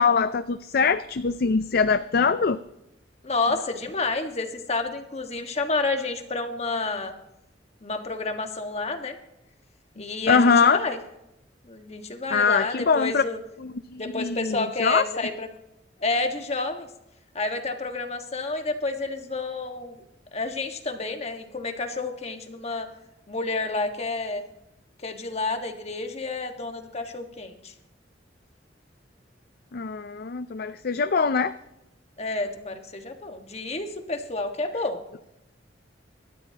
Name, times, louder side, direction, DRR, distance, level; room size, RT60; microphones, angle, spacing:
voice 1, 0.0-2.6 10.3-10.8 12.3-13.2 13.6-15.0 29.7-31.5, left 5 dB, 55° left, 11 dB, 0.5 m, -22 dB
voice 2, 3.2-7.1 7.8-9.2 10.0-11.0 11.6-13.4 14.0-15.5 16.0-16.9 17.3-20.0 20.3-22.9 23.3-24.4 25.0-27.7 32.2-35.0, left 3 dB, 35° left, 5 dB, 1.6 m, -29 dB
25.5 x 13.0 x 2.9 m, 0.86 s
head